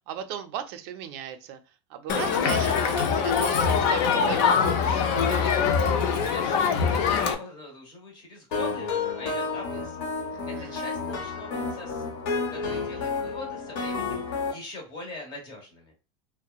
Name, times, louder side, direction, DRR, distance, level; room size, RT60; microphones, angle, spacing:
voice 1, 0.1-1.6 1.9-4.5 10.3-10.8, right 9 dB, 50° right, 9 dB, 0.4 m, -36 dB
Crowd, 2.1-7.3, left 6 dB, 50° left, 0.4 m, -23 dB
voice 2, 5.3-5.7 6.0-10.1 10.4-12.1 12.5-14.2 14.5-15.9, left 2 dB, 30° left, 0 dB, 0.9 m, -42 dB
sound 1, 8.5-14.5, left 4 dB, 70° left, 0.9 m, -31 dB
2.8 x 2.0 x 2.3 m, 0.32 s
supercardioid pair, 170°, 16 cm